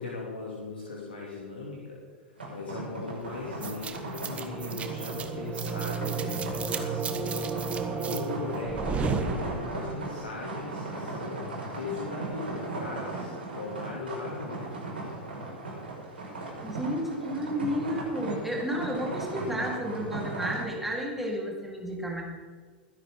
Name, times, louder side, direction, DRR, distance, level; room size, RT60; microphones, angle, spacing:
voice 1, 0.0-2.1 2.5-14.7, left 3 dB, 75° left, -3 dB, 2.8 m, -39 dB
sound 1, 2.4-20.6, right 2 dB, 75° right, 5.5 m, -38 dB
sound 2, 3.6-10.0, right 5 dB, 20° right, 1.4 m, -32 dB
voice 2, 16.6-22.2, equal, 5° right, -2 dB, 3.9 m, -32 dB
22.0 x 11.0 x 3.8 m, 1.5 s
figure-of-eight pair, 95°, 6 cm